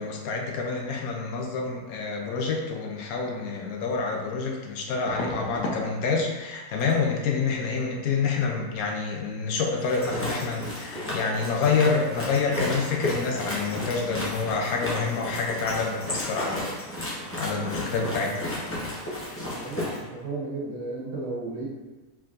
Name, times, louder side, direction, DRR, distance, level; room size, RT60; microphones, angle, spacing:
voice 1, 0.0-16.7 17.0-18.6, left 4 dB, 75° left, 1 dB, 1.0 m, -27 dB
sound 1, 3.5-3.6 5.1-5.9 6.1-6.5 6.8-7.0 9.9-10.0 10.3-10.5 10.8-10.9, left 1 dB, 90° left, 1.3 m, -35 dB
sound 2, 9.8-20.0, left 1 dB, 15° left, 0.5 m, -33 dB
voice 2, 19.5-21.7, right 2 dB, 55° right, -7 dB, 1.5 m, -34 dB
4.5 x 3.6 x 2.5 m, 1.2 s
omnidirectional pair, 1.6 m